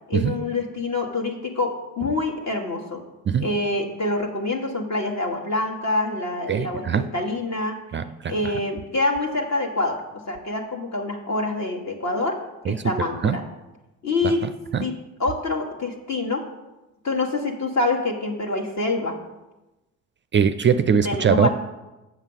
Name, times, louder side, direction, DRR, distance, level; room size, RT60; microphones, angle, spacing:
voice 1, 0.1-3.0 3.4-7.8 8.3-12.4 12.6-13.4 14.0-14.5 14.8-14.9 15.2-16.4 17.0-19.2 21.0-21.5, left 2 dB, 40° left, 1 dB, 1.4 m, -26 dB
voice 2, 6.5-7.0 7.9-8.3 12.7-12.8 13.2-13.4 14.7-14.8 20.3-21.5, right 7 dB, 30° right, 11 dB, 0.4 m, -21 dB
7.2 x 5.9 x 5.5 m, 1.0 s
hypercardioid pair, 50°, 41 cm